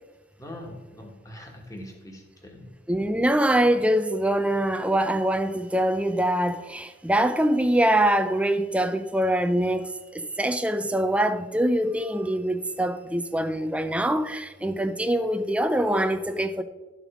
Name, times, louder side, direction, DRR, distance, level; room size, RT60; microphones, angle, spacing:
voice 1, 0.4-2.7, left 1 dB, 15° left, 1.5 m, -42 dB
voice 2, 2.9-16.6, right 1 dB, 5° right, 0.5 m, -24 dB
12.5 x 5.1 x 5.0 m
head